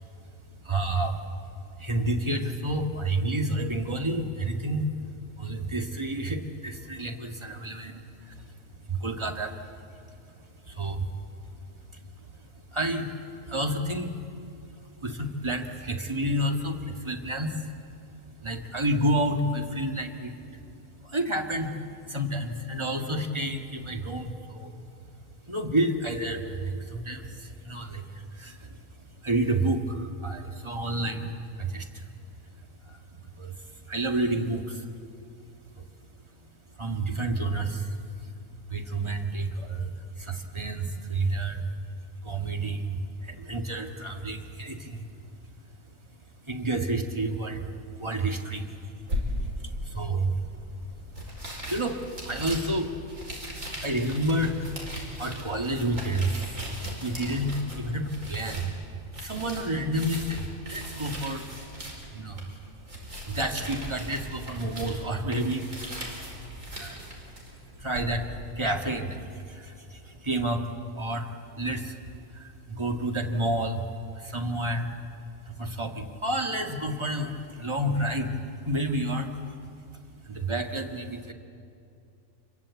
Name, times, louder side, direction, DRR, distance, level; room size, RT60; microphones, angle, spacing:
voice 1, 0.6-1.2 1.8-4.9 5.4-8.5 8.9-10.0 10.6-11.1 11.9-12.0 12.7-13.1 13.4-14.2 15.0-17.7 18.4-20.3 21.0-21.7 22.1-24.8 25.5-28.8 29.2-32.1 32.9-34.9 35.8-35.9 36.8-37.9 38.7-41.7 42.2-45.1 46.4-47.7 48.0-48.9 49.6-50.4 51.7-52.9 53.7-56.7 57.0-58.7 59.2-61.5 62.1-62.5 63.3-66.1 66.8-67.0 67.8-70.7 71.0-71.3 71.5-72.0 72.3-73.9 74.2-74.9 75.5-78.3 78.6-79.3 80.2-81.3, right 1 dB, 20° right, 3 dB, 1.9 m, -30 dB
sound 1, 49.1-68.2, equal, 50° right, 5.3 m, -38 dB
28.0 x 22.0 x 8.4 m, 2.6 s
omnidirectional pair, 1.7 m